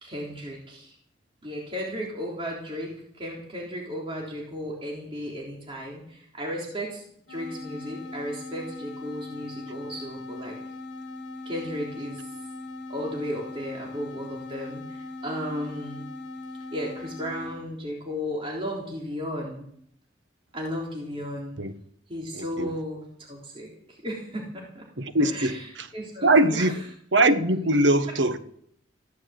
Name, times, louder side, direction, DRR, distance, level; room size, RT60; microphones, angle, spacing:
voice 1, 0.0-0.9 1.4-7.0 7.3-10.6 11.5-12.2 12.9-16.0 16.7-19.6 20.5-21.6 22.1-24.9 25.2-26.7, equal, 30° right, 3.6 m, -35 dB
sound 1, 7.3-17.7, left 2 dB, 65° left, 1.7 m, -40 dB
voice 2, 22.3-22.7 25.0-25.6 26.2-26.7 27.1-28.4, right 2 dB, 90° right, 1.4 m, -21 dB
15.5 x 12.0 x 7.8 m
head